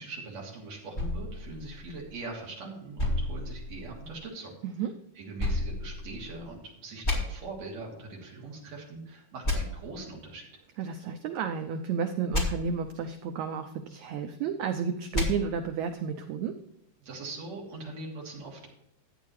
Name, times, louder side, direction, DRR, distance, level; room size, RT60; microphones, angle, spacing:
voice 1, 0.0-4.6 5.2-10.5 17.0-18.7, right 3 dB, 50° right, -2 dB, 3.9 m, -42 dB
sound 1, 0.9-2.4 3.0-4.2 5.4-6.5 7.0-7.2 9.4-9.6 12.3-12.4 15.1-15.3, left 2 dB, 20° left, 2.0 m, -31 dB
voice 2, 10.8-16.5, right 6 dB, 90° right, 7 dB, 1.6 m, -32 dB
14.5 x 9.5 x 3.2 m, 0.82 s
omnidirectional pair, 4.2 m